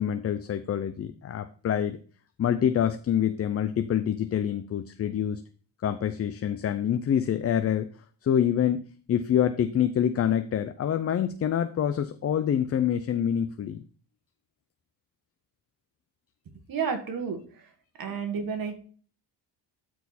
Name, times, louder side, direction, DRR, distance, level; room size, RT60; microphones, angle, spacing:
voice 1, 0.0-2.0 2.4-5.4 5.8-7.9 8.2-13.8 18.1-18.2, left 9 dB, 35° left, 9 dB, 0.5 m, -26 dB
voice 2, 16.7-17.4 18.0-18.8, right 6 dB, 50° right, 6 dB, 1.9 m, -30 dB
12.5 x 4.7 x 4.2 m, 0.42 s
cardioid pair, 145°, 44 cm